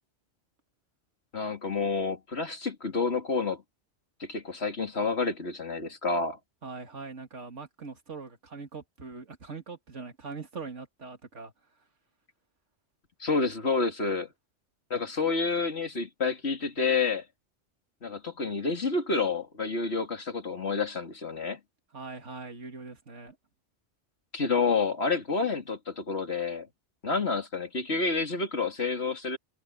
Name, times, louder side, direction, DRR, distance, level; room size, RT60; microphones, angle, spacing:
voice 1, 1.3-3.6 4.2-6.4 13.2-14.3 14.9-17.2 18.0-21.6 24.3-26.7 27.0-29.4, left 4 dB, 65° left, 2.9 m, -29 dB
voice 2, 6.6-11.5 21.9-23.4, right 4 dB, 85° right, 2.6 m, -42 dB
omnidirectional pair, 1.2 m